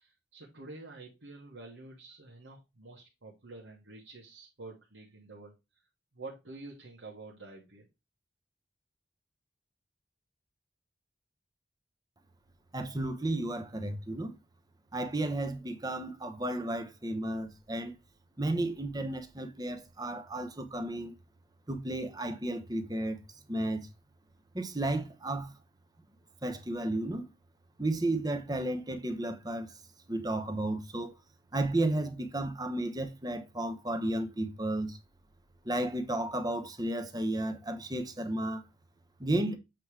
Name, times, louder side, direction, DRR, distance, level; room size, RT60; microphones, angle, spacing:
voice 1, 0.0-5.5 6.1-7.9, right 3 dB, 75° right, 1.4 m, -48 dB
voice 2, 12.7-14.3 14.9-17.9 18.4-21.1 21.7-23.2 23.5-23.9 24.5-25.5 26.4-27.3 27.8-29.8 30.1-31.1 31.5-35.0 35.6-38.6 39.2-39.6, right 1 dB, 20° right, 1.0 m, -33 dB
7.8 x 3.1 x 4.9 m
head